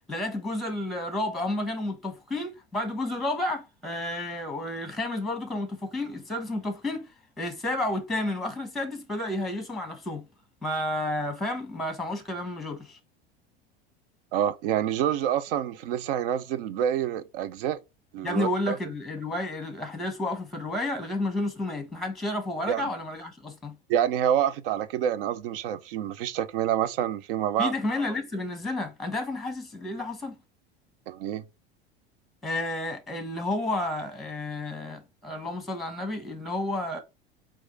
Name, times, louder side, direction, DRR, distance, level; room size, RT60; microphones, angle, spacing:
voice 1, 0.1-7.1 7.4-10.2 10.6-13.0 18.2-23.7 27.6-30.4 32.4-37.0, left 1 dB, ahead, 1.1 m, -31 dB
voice 2, 14.3-17.8 18.1-18.8 22.7-22.9 23.9-27.7 31.1-31.4, right 10 dB, 65° right, 0.6 m, -27 dB
4.7 x 2.5 x 3.9 m
hypercardioid pair, 80°, 31 cm